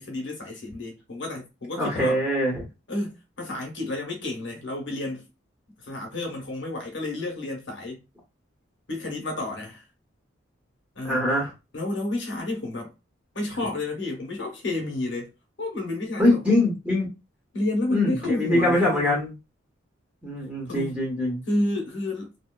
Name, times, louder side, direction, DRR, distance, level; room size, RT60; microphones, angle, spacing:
voice 1, 0.0-2.2 2.9-5.2 5.8-8.0 8.9-9.8 10.9-11.3 11.7-12.9 13.3-15.3 15.6-16.6 17.5-19.2 20.6-21.0 21.5-22.3, left 2 dB, 65° left, 0.9 m, -30 dB
voice 2, 1.8-2.6 11.0-11.5 16.2-17.1 17.9-19.3 20.2-21.4, left 1 dB, 5° right, 1.0 m, -23 dB
2.9 x 2.1 x 2.2 m
head